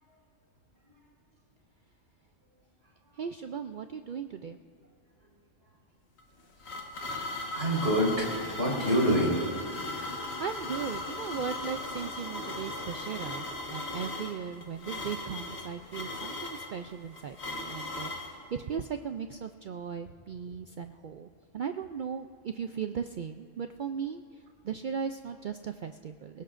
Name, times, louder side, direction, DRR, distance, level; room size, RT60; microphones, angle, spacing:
voice 1, 3.2-4.6 9.9-13.5 13.7-21.3 21.5-24.2 24.6-26.4, right 7 dB, 80° right, 7 dB, 0.4 m, -37 dB
sound 1, 6.2-18.3, left 2 dB, 55° left, 1.7 m, -38 dB
voice 2, 7.1-10.0 10.2-10.3, equal, 55° right, -3 dB, 4.7 m, -28 dB
26.5 x 17.5 x 2.5 m, 2.4 s
omnidirectional pair, 1.4 m